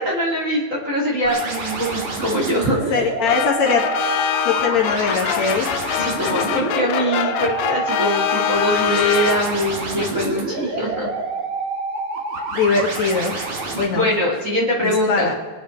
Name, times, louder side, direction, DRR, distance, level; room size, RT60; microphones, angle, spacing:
voice 1, 0.0-2.9 6.0-11.1 13.9-15.3, equal, 25° right, -3 dB, 2.8 m, -22 dB
sound 1, 1.2-13.8, right 3 dB, 60° right, 3.7 m, -27 dB
voice 2, 2.9-3.8 4.4-5.7 12.5-13.5 13.8-14.1 14.8-15.3, left 5 dB, 60° left, 0 dB, 2.6 m, -21 dB
sound 2, 3.3-9.8, left 11 dB, 85° left, 2.4 m, -24 dB
24.5 x 9.2 x 4.5 m, 1.5 s
omnidirectional pair, 3.8 m